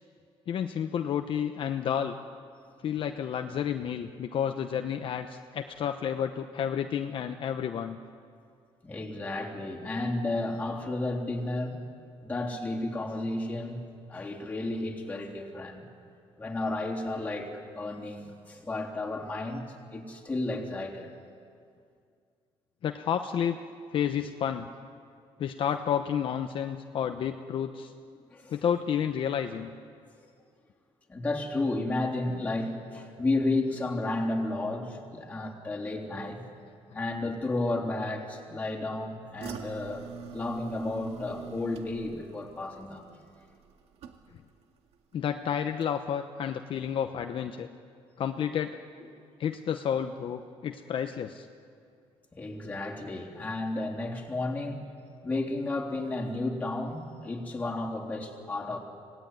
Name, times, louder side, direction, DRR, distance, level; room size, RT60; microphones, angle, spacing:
voice 1, 0.5-2.2 2.8-8.0 22.8-23.6 23.9-24.7 25.4-27.9 28.5-29.7 45.1-47.7 48.2-48.8 49.4-51.5, left 8 dB, 55° left, 6 dB, 0.9 m, -30 dB
voice 2, 8.8-11.8 12.2-13.8 14.1-15.8 16.4-21.1 28.3-28.7 31.1-36.4 36.9-43.1 52.3-54.8 55.2-58.8, left 2 dB, 15° left, -2 dB, 3.5 m, -32 dB
sound 1, 39.4-44.6 44.9-45.4 45.8-45.9, right 6 dB, 80° right, 2.0 m, -45 dB
26.0 x 18.5 x 9.6 m, 2.3 s
cardioid pair, 140°, 11 cm